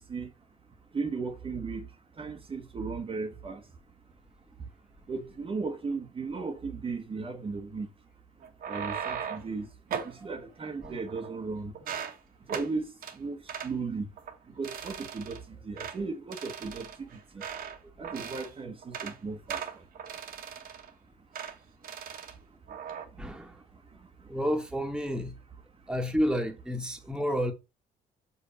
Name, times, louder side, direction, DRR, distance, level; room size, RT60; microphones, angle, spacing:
voice 1, 0.9-1.9 2.2-3.6 5.1-7.9 8.7-9.7 10.0-11.7 12.5-12.8 13.2-14.1 14.6-17.2 18.0-19.6, right 4 dB, 35° right, 1.3 m, -36 dB
sound 1, 8.4-9.5 9.9-10.2 10.8-11.5 11.7-12.2 12.5-12.7 13.0-13.2 13.5-13.7 14.2-14.4 14.6-15.4 15.8-16.0 16.3-17.8 18.0-18.5 18.8-19.2 19.5-20.9 21.3-21.6 21.8-22.3 22.7-23.0, right 7 dB, 60° right, 1.6 m, -38 dB
voice 2, 23.2-23.6 24.3-25.3 25.9-27.5, equal, 5° right, 1.6 m, -30 dB
6.4 x 5.6 x 4.1 m
cardioid pair, 105°, 16 cm